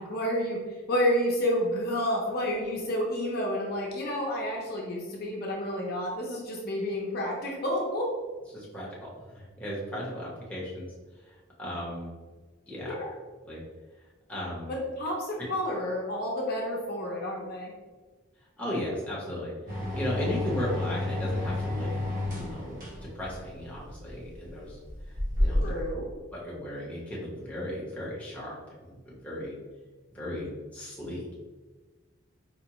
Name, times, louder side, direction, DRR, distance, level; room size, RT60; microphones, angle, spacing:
voice 1, 0.0-8.1 12.9-13.1 14.7-17.7 25.6-26.1, equal, 50° left, -2 dB, 0.7 m, -30 dB
voice 2, 8.5-10.9 11.3-12.1 12.7-13.0 13.4-13.6 14.3-14.7 18.6-21.9 22.3-24.8 25.4-25.7 26.3-29.5 30.1-31.3, equal, 5° left, -6 dB, 0.8 m, -36 dB
sound 1, 19.7-25.9, left 1 dB, 40° right, 1.0 m, -31 dB
4.5 x 2.2 x 2.9 m, 1.3 s
head